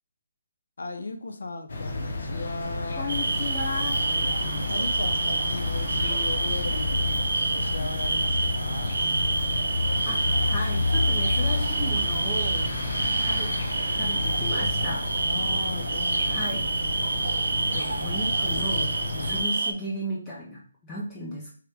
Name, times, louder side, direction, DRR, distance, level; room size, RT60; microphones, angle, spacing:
voice 1, 0.8-3.1 3.8-4.3 4.7-7.1 7.5-8.9 15.2-17.2 19.1-19.3, left 3 dB, 85° left, 7 dB, 0.5 m, -37 dB
sound 1, 1.7-19.4, left 2 dB, 50° left, 0.7 m, -30 dB
voice 2, 3.0-4.0 10.0-10.2 10.5-13.5 13.9-15.1 16.3-16.6 17.5-18.9 19.2-21.5, left 1 dB, 10° left, -5 dB, 0.4 m, -35 dB
sound 2, 3.1-19.7, right 3 dB, 75° right, 0.3 m, -28 dB
3.2 x 2.4 x 3.2 m, 0.43 s
hypercardioid pair, 175°, 0 cm